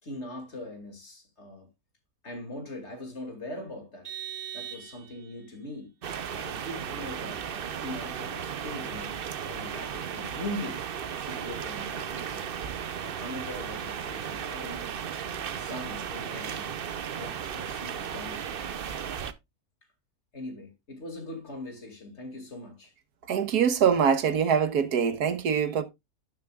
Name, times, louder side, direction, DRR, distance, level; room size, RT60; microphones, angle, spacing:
voice 1, 0.0-1.7 2.2-4.1 4.5-5.9 6.3-9.2 9.5-10.9 11.1-12.5 13.0-14.9 15.6-16.7 17.1-18.7 20.3-22.9, left 1 dB, 45° left, 2.7 m, -41 dB
Vehicle horn car horn honking, 4.0-5.4, right 10 dB, 30° right, 2.3 m, -40 dB
sound 1, 6.0-19.3, right 8 dB, 55° right, 0.7 m, -35 dB
voice 2, 23.3-25.8, right 7 dB, 85° right, 1.6 m, -24 dB
12.0 x 7.2 x 2.4 m
omnidirectional pair, 1.6 m